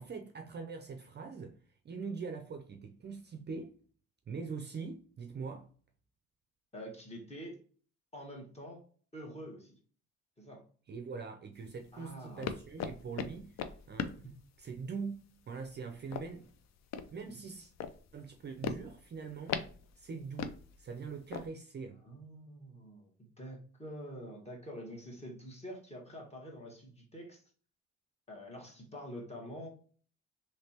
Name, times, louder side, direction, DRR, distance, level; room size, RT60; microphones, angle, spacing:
voice 1, 0.0-1.6 1.8-3.8 4.3-5.7 10.9-13.5 13.9-14.2 14.6-16.5 17.1-17.7 18.1-19.6 20.0-22.0, right 5 dB, 35° right, 0.5 m, -43 dB
voice 2, 6.7-7.6 8.1-8.8 9.1-9.7 10.4-10.6 11.9-12.5 17.3-17.4 22.0-23.1 23.4-27.4 28.3-29.7, equal, 20° left, 1.4 m, -46 dB
sound 1, 11.6-21.5, left 7 dB, 60° left, 0.5 m, -41 dB
3.3 x 3.1 x 2.8 m
cardioid pair, 90°, 30 cm